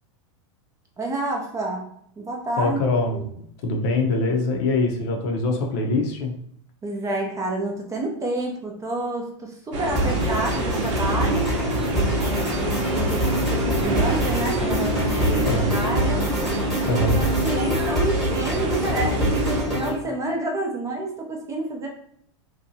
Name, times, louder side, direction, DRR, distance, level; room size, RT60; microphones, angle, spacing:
voice 1, 1.0-1.9 2.2-2.8 3.1-3.3 6.8-11.5 12.2-16.2 16.8-21.9, right 2 dB, 20° right, 1 dB, 0.5 m, -29 dB
voice 2, 2.6-3.2 3.6-6.3 15.4-15.8 16.9-17.2, left 2 dB, 55° left, 1 dB, 0.6 m, -23 dB
sound 1, 9.7-19.6, right 1 dB, 65° right, 0.8 m, -27 dB
sound 2, 10.0-20.0, right 1 dB, ahead, 1.1 m, -25 dB
sound 3, 11.6-17.7, left 1 dB, 90° left, 1.0 m, -35 dB
2.7 x 2.2 x 2.6 m, 0.68 s
hypercardioid pair, 115°, 16 cm